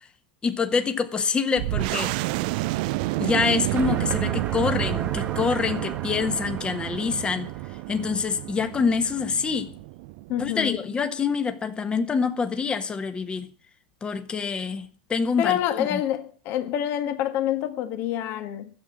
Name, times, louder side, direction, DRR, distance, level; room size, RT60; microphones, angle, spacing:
voice 1, 0.4-2.2 3.2-7.5 7.9-9.7 10.4-13.5 14.0-16.0, left 5 dB, 20° left, 1.4 m, -26 dB
sound 1, 1.6-10.8, right 19 dB, 60° right, 0.5 m, -29 dB
sound 2, 3.8-8.7, right 6 dB, 25° right, 1.3 m, -38 dB
voice 2, 10.3-10.8 15.4-18.7, left 11 dB, 50° left, 1.7 m, -27 dB
12.5 x 7.9 x 8.6 m
hypercardioid pair, 105°, 5 cm